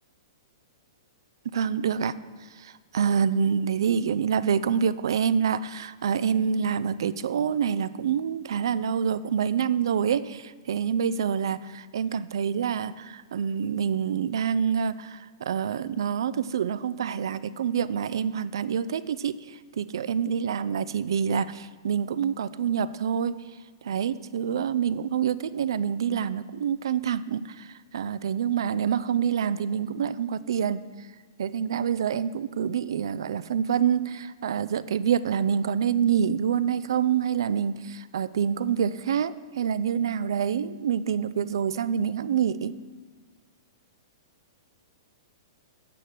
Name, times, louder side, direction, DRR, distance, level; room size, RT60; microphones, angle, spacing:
voice 1, 1.5-2.1 2.6-23.4 23.8-27.7 27.9-30.8 31.4-42.7, right 7 dB, 75° right, 16 dB, 0.5 m, -26 dB
8.7 x 6.4 x 7.5 m, 1.5 s
hypercardioid pair, 130°, 2 cm